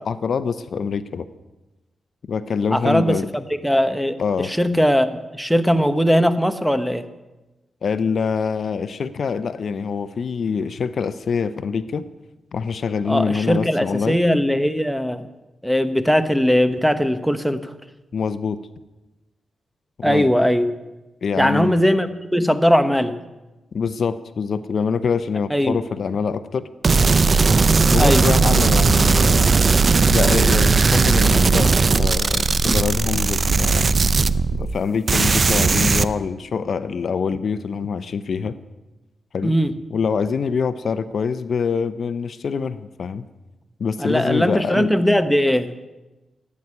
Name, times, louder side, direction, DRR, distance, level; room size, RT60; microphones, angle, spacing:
voice 1, 0.1-1.3 2.3-3.3 4.2-4.5 7.8-12.0 12.5-14.2 18.1-18.6 20.0-20.3 21.2-21.8 23.7-26.7 27.9-29.5 30.1-34.0 34.5-38.5 39.3-39.5 39.9-43.3 43.8-44.9, left 5 dB, 65° left, 13 dB, 0.8 m, -25 dB
voice 2, 2.7-7.0 13.1-15.3 15.6-17.7 20.0-20.7 21.4-23.2 25.5-25.8 28.0-28.3 39.4-39.8 44.0-45.7, equal, ahead, 9 dB, 1.2 m, -19 dB
sound 1, 26.8-34.8 35.1-36.0, right 4 dB, 45° right, 0.7 m, -17 dB
15.0 x 9.5 x 9.8 m, 1.1 s
cardioid pair, 80°, 0 cm